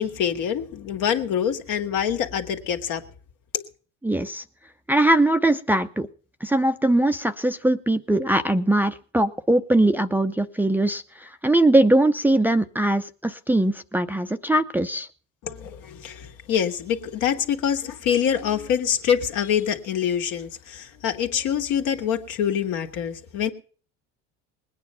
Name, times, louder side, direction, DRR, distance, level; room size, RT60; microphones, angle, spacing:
voice 1, 0.0-3.0 3.5-3.6 15.4-23.5, left 8 dB, 65° left, 2.1 m, -25 dB
voice 2, 4.0-4.4 4.9-6.1 6.4-15.1, right 1 dB, 5° right, 0.6 m, -21 dB
20.5 x 9.3 x 5.7 m
supercardioid pair, 105°, 34 cm